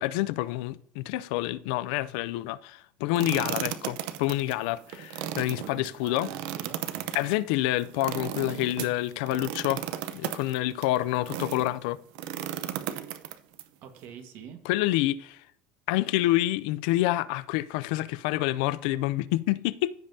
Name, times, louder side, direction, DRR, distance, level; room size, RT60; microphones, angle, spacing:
voice 1, 0.0-6.3 7.1-9.9 10.1-12.0 14.6-15.4 15.9-19.9, left 16 dB, 85° left, 0.4 m, -28 dB
sound 1, 3.2-11.7 12.2-13.6, right 11 dB, 80° right, 0.7 m, -35 dB
voice 2, 5.5-7.1 13.8-14.6, right 8 dB, 55° right, 1.4 m, -46 dB
15.0 x 5.4 x 2.7 m
cardioid pair, 150°, 4 cm